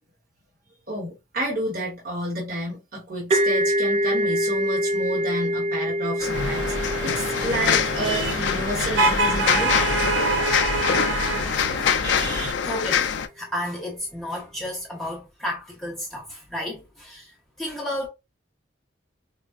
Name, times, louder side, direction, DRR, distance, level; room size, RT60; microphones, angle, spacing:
voice 1, 0.9-9.7, right 1 dB, 50° right, 1.1 m, -30 dB
sound 1, 3.3-10.8, equal, 35° right, 0.4 m, -27 dB
sound 2, 6.2-13.3, left 7 dB, 65° left, 0.4 m, -25 dB
sound 3, 6.3-12.5, right 3 dB, 85° right, 0.7 m, -26 dB
voice 2, 11.8-18.1, left 1 dB, ahead, 0.7 m, -33 dB
4.1 x 2.0 x 2.3 m
head